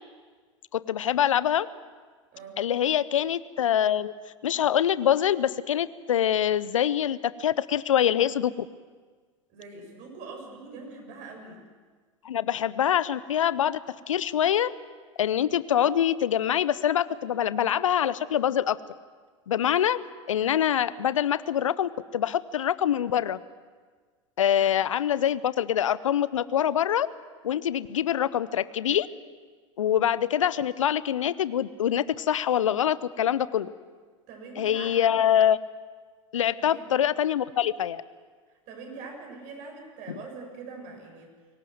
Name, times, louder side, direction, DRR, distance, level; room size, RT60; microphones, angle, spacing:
voice 1, 0.7-1.7 2.6-4.1 4.4-8.7 12.2-13.8 14.1-14.7 15.2-18.8 19.5-20.0 20.3-23.4 24.4-27.1 27.4-29.1 29.8-33.7 34.6-35.6 36.3-38.0 40.1-40.2, left 10 dB, 75° left, 18 dB, 0.7 m, -25 dB
voice 2, 9.5-11.6 24.6-24.7 34.3-35.2 36.5-36.9 38.7-41.3, right 4 dB, 50° right, 2 dB, 6.9 m, -43 dB
23.5 x 18.0 x 7.8 m, 1.5 s
figure-of-eight pair, 85°, 17 cm